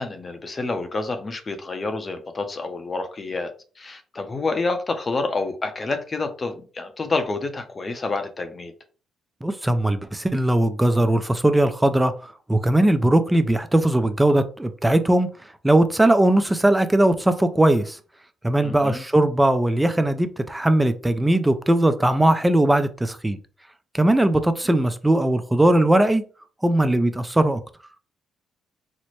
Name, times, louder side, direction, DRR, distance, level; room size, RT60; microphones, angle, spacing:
voice 1, 0.0-3.5 3.8-8.7 18.6-19.0, left 3 dB, 35° left, 0.6 m, -28 dB
voice 2, 9.4-15.3 15.6-18.0 18.4-23.4 23.9-26.2 26.6-27.6, right 1 dB, 10° right, 0.4 m, -19 dB
4.1 x 2.1 x 3.1 m
cardioid pair, 90°, 0 cm